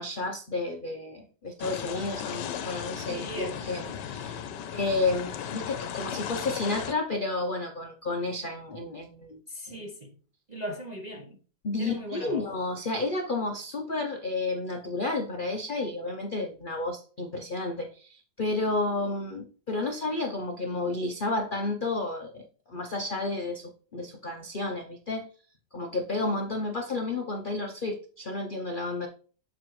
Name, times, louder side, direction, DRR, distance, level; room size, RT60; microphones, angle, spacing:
voice 1, 0.0-9.4 9.7-9.8 11.6-25.3 25.7-29.1, left 2 dB, 60° left, 0.5 m, -31 dB
sound 1, 1.6-6.9, left 9 dB, 75° left, 1.3 m, -36 dB
voice 2, 3.1-3.7 9.5-10.1 10.5-11.4 11.8-12.4, right 1 dB, 40° right, 0.6 m, -38 dB
7.2 x 5.9 x 3.1 m
omnidirectional pair, 1.9 m